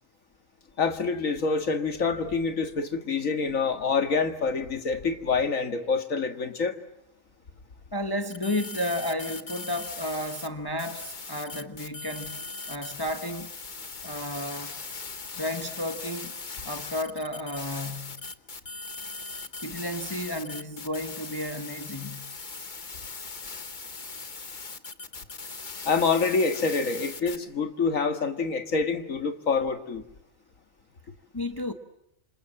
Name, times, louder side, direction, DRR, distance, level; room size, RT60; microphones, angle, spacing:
voice 1, 0.8-6.8 25.8-30.0, left 4 dB, 85° left, 2.2 m, -26 dB
voice 2, 7.9-13.5 14.0-14.8 15.4-16.3 16.6-18.2 19.6-22.3 31.3-31.7, left 1 dB, 20° left, 1.1 m, -32 dB
sound 1, 8.3-10.5 10.8-27.4, left 4 dB, 40° left, 1.3 m, -39 dB
27.5 x 27.0 x 7.5 m
omnidirectional pair, 1.4 m